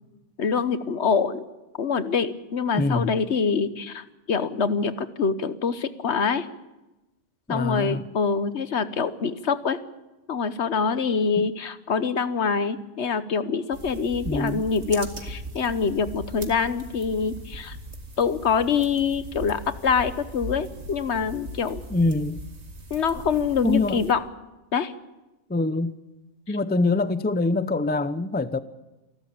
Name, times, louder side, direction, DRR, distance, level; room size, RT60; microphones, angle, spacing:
voice 1, 0.4-1.4 1.8-6.5 7.5-9.8 10.3-17.8 18.2-21.8 22.9-24.2 24.7-24.9, left 5 dB, 60° left, 1.3 m, -25 dB
voice 2, 2.7-3.1 7.5-8.0 11.4-11.5 14.2-14.7 21.9-22.4 23.6-24.0 25.5-26.0 26.5-28.6, left 2 dB, 10° left, 0.5 m, -24 dB
sound 1, 13.7-24.1, right 1 dB, 60° right, 2.5 m, -39 dB
27.5 x 12.5 x 8.7 m
omnidirectional pair, 1.3 m